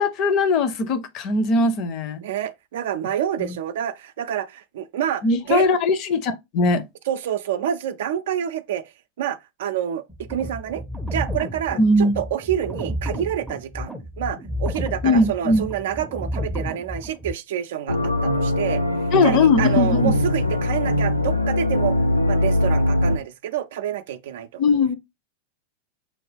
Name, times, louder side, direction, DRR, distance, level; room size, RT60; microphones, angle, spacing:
voice 1, 0.0-2.2 5.2-6.8 11.8-12.2 15.0-15.6 19.1-20.1 24.6-25.0, left 3 dB, 40° left, 0.6 m, -20 dB
voice 2, 2.2-5.7 7.1-8.9 9.2-10.8 11.1-18.8 19.2-22.0 22.3-24.6, right 10 dB, 55° right, 0.4 m, -28 dB
sound 1, 10.1-17.3, equal, 5° right, 0.5 m, -31 dB
sound 2, 17.9-23.2, left 1 dB, 85° left, 0.4 m, -21 dB
6.3 x 2.2 x 3.2 m
figure-of-eight pair, 90°, 0 cm